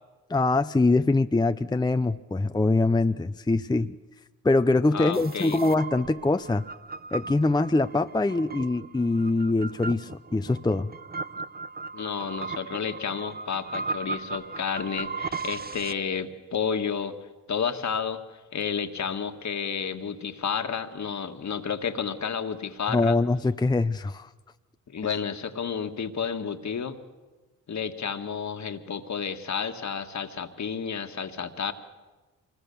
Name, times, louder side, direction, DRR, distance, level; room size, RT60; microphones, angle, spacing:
voice 1, 0.3-4.0 4.4-6.6 7.1-10.9 22.9-24.3, left 2 dB, 10° left, 10 dB, 0.7 m, -23 dB
voice 2, 4.9-5.6 11.9-17.2 17.5-18.2 18.5-23.2 24.9-27.0 27.7-31.7, left 6 dB, 55° left, 8 dB, 1.7 m, -31 dB
sound 1, 5.1-15.9, right 4 dB, 30° right, 0.8 m, -37 dB
25.0 x 21.0 x 7.0 m, 1.2 s
supercardioid pair, 50°, 34 cm